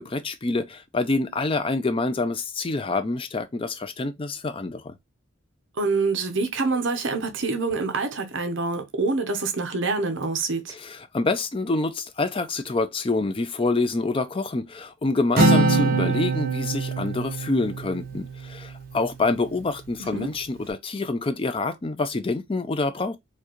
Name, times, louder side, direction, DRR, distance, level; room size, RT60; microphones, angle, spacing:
voice 1, 0.0-5.0 10.7-23.2, left 3 dB, 25° left, 0.4 m, -26 dB
voice 2, 5.8-10.7 20.0-20.3, right 3 dB, 65° right, 0.8 m, -26 dB
Acoustic guitar, 15.4-19.0, right 2 dB, 45° right, 1.2 m, -23 dB
4.5 x 2.3 x 3.0 m
head